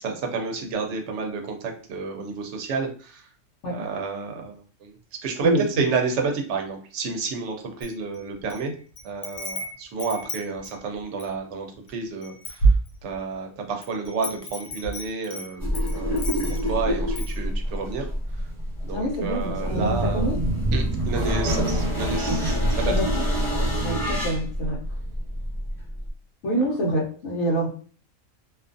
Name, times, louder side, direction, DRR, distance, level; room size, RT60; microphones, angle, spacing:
voice 1, 0.0-3.3 3.7-4.9 5.2-8.7 9.0-12.7 13.0-18.1 18.8-20.3 20.7-22.9 23.6-23.7 26.6-26.7, right 4 dB, 65° right, 3 dB, 0.9 m, -30 dB
Wind chime, 7.8-8.6 9.0-11.4 11.9-12.0 12.2-13.3 13.8-16.8 17.2-17.4, right 3 dB, 90° left, 1.0 m, -28 dB
sound 1, 15.6-26.1, equal, 15° right, 1.3 m, -26 dB
voice 2, 18.9-20.4 21.3-21.6 22.8-23.1 23.8-24.8 26.4-27.7, right 1 dB, 65° left, -4 dB, 1.0 m, -26 dB
2.5 x 2.4 x 2.5 m, 0.41 s
omnidirectional pair, 1.4 m